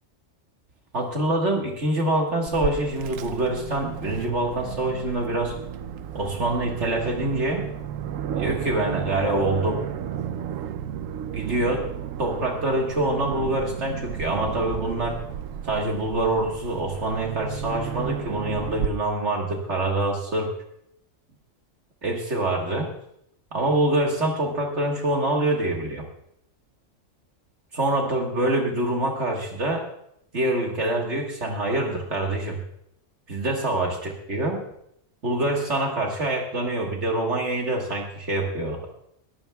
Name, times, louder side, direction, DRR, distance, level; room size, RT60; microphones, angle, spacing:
voice 1, 0.9-5.5 6.1-7.7 8.3-9.8 11.3-11.9 12.2-15.2 15.6-20.5 22.0-22.9 23.5-26.1 27.7-29.9 30.3-32.6 33.3-34.6 35.2-38.8, right 1 dB, 65° right, 0 dB, 1.8 m, -25 dB
Aircraft, 2.5-18.9, right 9 dB, 90° right, 1.0 m, -33 dB
21.0 x 15.0 x 2.3 m, 0.75 s
omnidirectional pair, 1.3 m